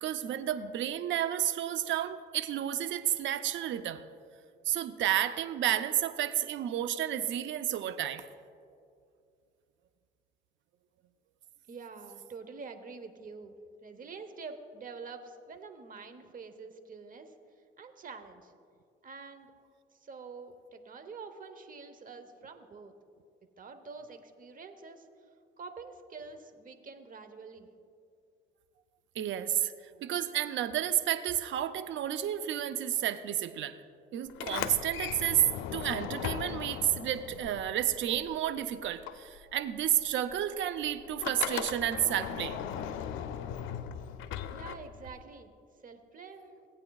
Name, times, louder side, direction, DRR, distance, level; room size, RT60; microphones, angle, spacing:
voice 1, 0.0-4.0 4.7-8.2 29.2-29.7 30.0-33.8 34.1-35.4 35.7-42.6, right 11 dB, 70° right, 12 dB, 0.5 m, -31 dB
voice 2, 11.7-13.5 13.8-17.3 17.8-18.5 19.0-19.5 19.9-22.9 23.6-25.3 25.6-27.7 44.5-45.5 45.8-46.7, right 4 dB, 45° right, 8 dB, 0.9 m, -46 dB
Sliding door, 34.3-38.6 38.8-45.2, left 9 dB, 90° left, 0.5 m, -38 dB
17.0 x 8.7 x 2.3 m, 2.4 s
cardioid pair, 90°, 20 cm